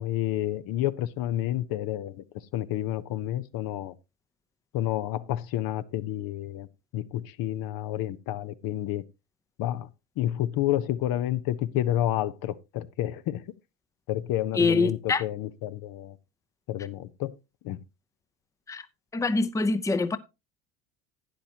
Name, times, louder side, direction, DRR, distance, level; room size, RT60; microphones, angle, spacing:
voice 1, 0.0-2.2 2.5-3.9 4.7-6.7 6.9-9.0 9.6-9.9 10.2-13.4 14.1-16.2 16.7-17.3 17.6-17.8, left 13 dB, 55° left, 0.8 m, -29 dB
voice 2, 14.5-15.2 18.7-18.9 19.1-20.2, left 3 dB, 10° left, 0.6 m, -24 dB
12.0 x 9.3 x 2.8 m
hypercardioid pair, 75°, 41 cm